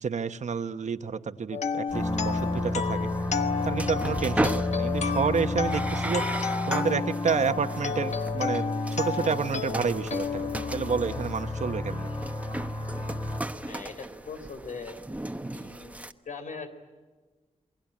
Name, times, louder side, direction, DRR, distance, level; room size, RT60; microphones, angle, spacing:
voice 1, 0.0-3.1 3.6-6.2 6.7-8.6 8.9-12.1, right 6 dB, 70° right, 10 dB, 1.1 m, -29 dB
sound 1, 1.5-11.4, left 6 dB, 60° left, 1.2 m, -32 dB
sound 2, 1.9-13.4, left 1 dB, 30° left, 2.3 m, -32 dB
sound 3, 1.9-16.1, right 1 dB, 10° right, 1.1 m, -37 dB
voice 2, 13.6-14.9 15.5-16.0 16.3-16.7, left 4 dB, 80° left, 7 dB, 3.8 m, -40 dB
28.0 x 22.5 x 8.8 m, 1.3 s
wide cardioid pair, 125°, 13 cm